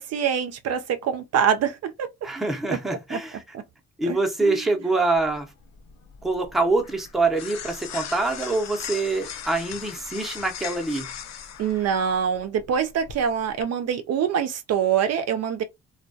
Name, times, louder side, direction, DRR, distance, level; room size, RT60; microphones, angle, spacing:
voice 1, 0.0-2.1 2.7-2.8 3.1-3.2 3.5-3.6 4.0-4.6 11.6-15.6, right 8 dB, 60° right, 0.4 m, -25 dB
voice 2, 2.2-3.4 4.0-5.5 6.2-11.1, right 3 dB, ahead, 0.6 m, -25 dB
sound 1, 5.2-13.6, left 8 dB, 60° left, 0.5 m, -39 dB
2.2 x 2.2 x 2.5 m
cardioid pair, 90°, 30 cm